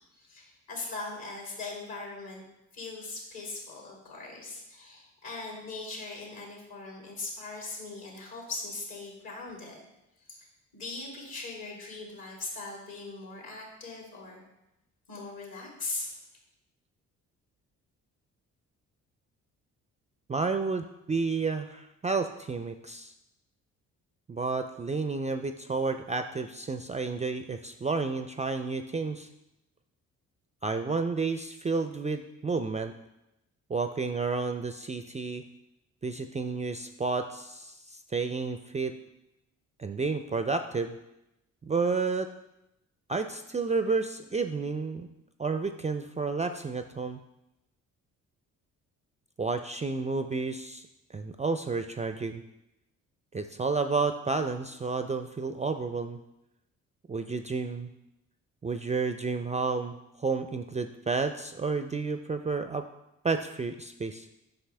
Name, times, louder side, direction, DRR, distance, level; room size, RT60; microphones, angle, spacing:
voice 1, 0.1-2.4 2.7-9.8 10.3-10.5 10.7-14.4 15.1-16.1, left 3 dB, 60° left, -2 dB, 2.7 m, -40 dB
voice 2, 20.3-23.1 24.3-29.3 30.6-32.9 33.7-35.4 36.0-38.9 39.8-41.0 41.6-42.3 43.1-45.1 45.4-47.2 49.4-50.9 51.1-52.4 53.3-56.2 57.1-57.9 58.6-62.9 63.2-64.3, right 4 dB, 20° right, 8 dB, 0.4 m, -31 dB
7.9 x 5.7 x 3.3 m, 0.90 s
hypercardioid pair, 45°, 40 cm